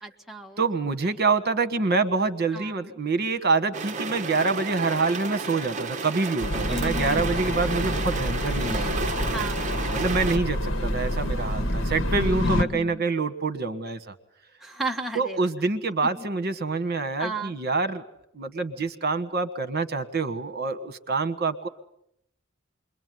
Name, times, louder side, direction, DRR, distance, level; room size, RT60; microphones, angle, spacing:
voice 1, 0.0-0.7 2.5-2.8 6.7-7.3 9.3-9.8 10.3-10.4 12.4-13.0 14.6-15.4 16.2-16.3 17.2-17.5, right 1 dB, ahead, 0 dB, 1.4 m, -34 dB
voice 2, 0.6-9.1 9.9-14.1 15.1-18.0 18.3-21.7, right 3 dB, 55° right, 12 dB, 1.5 m, -26 dB
sound 1, 3.7-10.4, right 4 dB, 40° right, 1.1 m, -32 dB
sound 2, 6.4-12.6, left 1 dB, 70° left, 1.8 m, -27 dB
28.0 x 22.5 x 9.4 m, 0.76 s
head